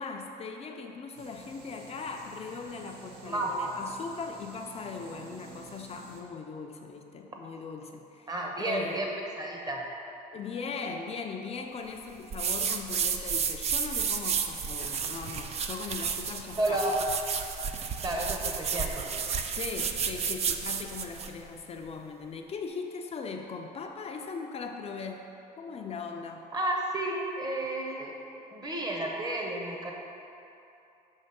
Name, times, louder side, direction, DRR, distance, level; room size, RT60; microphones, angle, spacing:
voice 1, 0.0-9.0 10.3-16.8 19.5-25.3 25.6-26.5, left 4 dB, 40° left, 3 dB, 0.5 m, -39 dB
sound 1, 1.2-6.2, right 4 dB, 70° right, 0.7 m, -50 dB
voice 2, 8.3-9.1 9.4-9.8 16.6-17.0 18.0-19.1 26.5-28.1 28.5-29.9, right 1 dB, 25° right, 0 dB, 0.9 m, -31 dB
sound 2, 12.3-21.4, right 6 dB, 40° right, 0.4 m, -32 dB
6.4 x 3.1 x 5.8 m, 2.9 s
cardioid pair, 110°, 17 cm